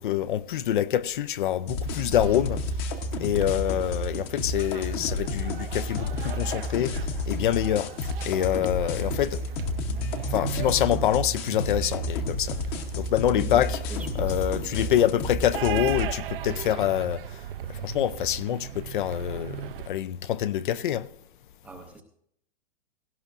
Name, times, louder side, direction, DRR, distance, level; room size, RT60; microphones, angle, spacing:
voice 1, 0.0-2.6 3.2-7.9 8.2-9.4 10.3-12.6 13.0-13.8 14.2-17.4 17.7-21.1, left 11 dB, 60° left, 0.5 m, -26 dB
sound 1, 1.7-16.1, left 2 dB, 25° left, 0.9 m, -31 dB
sound 2, 1.8-19.9, right 10 dB, 65° right, 0.6 m, -38 dB
voice 2, 13.3-15.1 21.6-22.0, right 3 dB, 5° right, 0.5 m, -42 dB
17.0 x 15.5 x 2.5 m
supercardioid pair, 170°, 29 cm